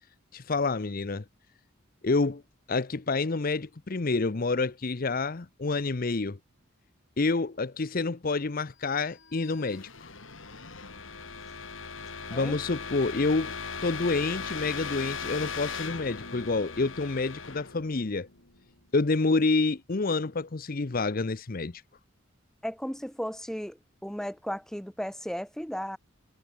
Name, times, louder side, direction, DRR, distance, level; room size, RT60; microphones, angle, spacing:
voice 1, 0.3-1.2 2.0-2.4 2.7-6.4 7.2-10.1 12.3-13.6 13.8-18.3 18.9-21.8, left 3 dB, 45° left, 0.7 m, -28 dB
sound 1, 9.0-18.8, left 5 dB, 75° left, 4.1 m, -39 dB
voice 2, 22.6-26.0, equal, ahead, 2.0 m, -35 dB
head